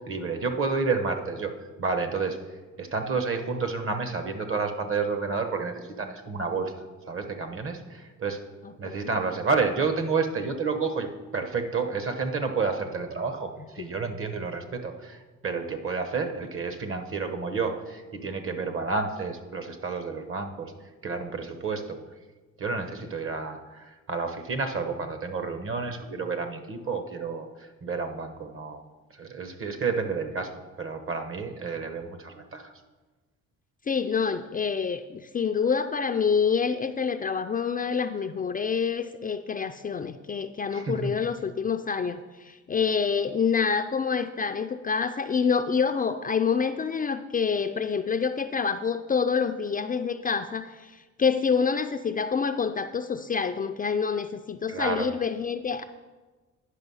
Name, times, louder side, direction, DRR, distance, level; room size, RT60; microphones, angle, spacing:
voice 1, 0.0-1.5 1.8-2.4 2.8-8.4 8.8-20.7 21.0-22.0 22.6-28.8 29.1-32.7 40.7-41.1 54.7-55.1, right 4 dB, 45° right, 7 dB, 1.1 m, -30 dB
voice 2, 33.9-55.8, left 6 dB, 30° left, 7 dB, 0.4 m, -27 dB
9.9 x 5.6 x 5.5 m, 1.3 s
cardioid pair, 90°, 30 cm